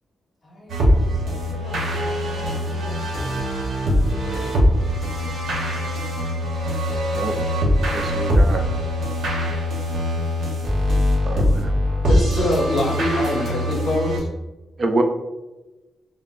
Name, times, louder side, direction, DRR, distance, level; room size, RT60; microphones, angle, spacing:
voice 1, 0.4-3.1, left 1 dB, 25° left, -3 dB, 1.0 m, -42 dB
sound 1, 0.7-14.2, equal, 85° right, 0.9 m, -22 dB
voice 2, 7.9-8.6 11.3-11.7 14.8-15.0, right 2 dB, 35° right, 5 dB, 0.4 m, -25 dB
voice 3, 12.1-14.3, left 1 dB, 55° left, 0 dB, 0.6 m, -23 dB
5.7 x 2.0 x 2.4 m, 1.1 s
wide cardioid pair, 175°, 0 cm